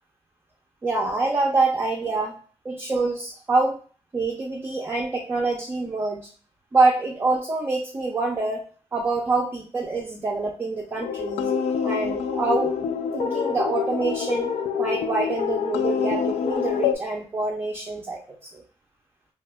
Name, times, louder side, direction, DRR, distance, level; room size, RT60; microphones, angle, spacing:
voice 1, 0.8-2.3 2.6-3.8 4.1-6.3 6.7-8.6 8.9-11.5 11.8-12.7 13.1-14.5 14.8-18.6, right 3 dB, 20° right, -1 dB, 0.4 m, -25 dB
sound 1, 11.0-17.0, left 7 dB, 80° left, 0.4 m, -26 dB
2.8 x 2.2 x 3.4 m, 0.41 s
wide cardioid pair, 135°, 11 cm